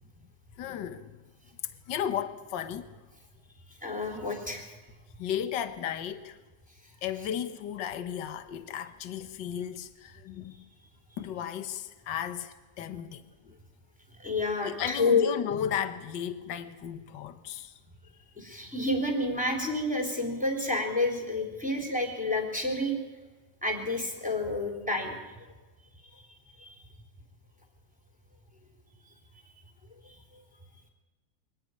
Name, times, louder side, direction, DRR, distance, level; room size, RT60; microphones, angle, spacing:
voice 1, 0.6-1.2 1.9-2.9 5.2-6.4 7.0-10.7 11.2-13.5 14.6-17.8, left 9 dB, 70° left, 1.7 m, -35 dB
voice 2, 3.8-4.7 14.2-15.3 18.4-22.9 23.6-25.2 26.1-26.2 26.6-26.8 30.0-30.2, left 2 dB, 5° right, 3.5 m, -29 dB
23.5 x 14.0 x 9.7 m
omnidirectional pair, 2.0 m